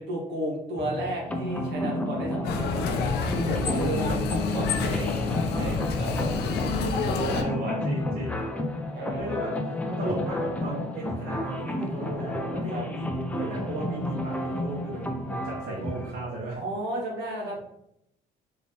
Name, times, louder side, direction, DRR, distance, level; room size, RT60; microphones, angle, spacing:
voice 1, 0.0-5.1 5.5-7.5 8.9-9.6 12.7-12.8 16.5-17.6, right 1 dB, 80° right, -2 dB, 1.2 m, -34 dB
sound 1, 0.8-16.1, left 1 dB, 10° left, 0.4 m, -32 dB
sound 2, 2.4-7.4, left 4 dB, 85° left, 0.5 m, -28 dB
voice 2, 3.7-4.2 7.3-8.5 9.1-9.5 9.8-16.6, right 2 dB, 65° right, -5 dB, 1.0 m, -35 dB
Bass guitar, 3.8-7.9, left 4 dB, 45° left, 0.8 m, -36 dB
3.4 x 2.9 x 2.8 m, 0.79 s
cardioid pair, 110°, 17 cm